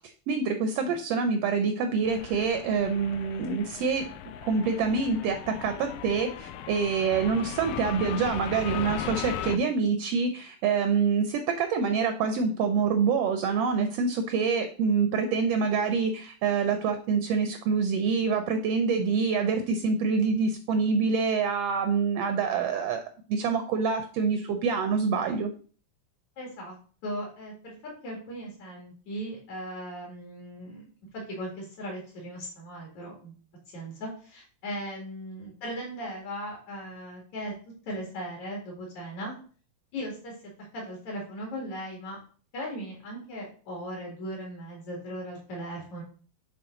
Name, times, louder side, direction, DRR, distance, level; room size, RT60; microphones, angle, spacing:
voice 1, 0.3-4.1 4.4-23.0 23.3-25.5, right 5 dB, 75° right, 7 dB, 1.4 m, -26 dB
sound 1, 2.0-9.6, left 9 dB, 85° left, 2.0 m, -38 dB
voice 2, 26.4-26.8 27.0-30.9 31.1-33.3 33.7-37.5 37.9-39.3 39.9-40.3 40.7-42.2 42.5-46.0, equal, 70° left, -2 dB, 3.3 m, -38 dB
8.5 x 3.5 x 3.8 m, 0.41 s
omnidirectional pair, 3.5 m